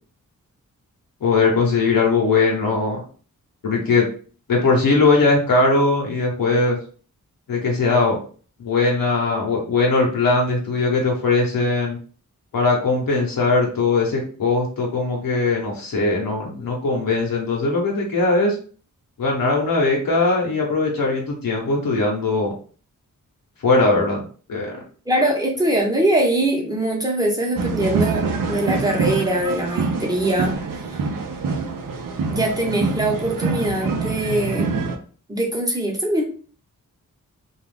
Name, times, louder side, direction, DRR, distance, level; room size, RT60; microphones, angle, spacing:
voice 1, 1.2-3.0 3.6-4.1 4.5-6.8 7.5-8.2 8.6-12.0 12.5-18.6 19.2-22.5 23.6-24.2 24.5-24.8, left 3 dB, 85° left, -1 dB, 0.8 m, -20 dB
voice 2, 25.1-28.2 28.5-30.5 32.3-34.7 35.3-36.2, right 1 dB, 10° right, -1 dB, 0.8 m, -22 dB
sound 1, 27.6-35.0, right 4 dB, 75° right, 0.6 m, -25 dB
2.5 x 2.3 x 3.3 m, 0.41 s
wide cardioid pair, 110°, 33 cm